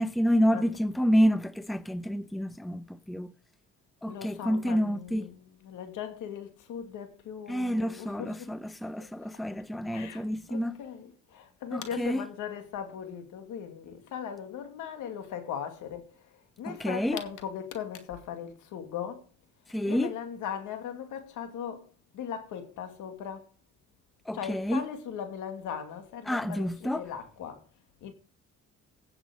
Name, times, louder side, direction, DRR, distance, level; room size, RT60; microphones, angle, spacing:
voice 1, 0.0-3.3 4.0-5.3 7.5-10.7 11.7-12.3 16.7-17.2 19.7-20.1 24.3-24.8 26.3-27.0, equal, ahead, 0.6 m, -28 dB
voice 2, 4.1-8.5 9.0-9.1 9.9-10.2 10.5-16.3 16.6-19.3 19.9-21.9 22.1-23.5 24.3-27.6 28.0-28.1, left 8 dB, 85° left, 2.3 m, -39 dB
16.5 x 7.4 x 5.0 m
cardioid pair, 90°, 30 cm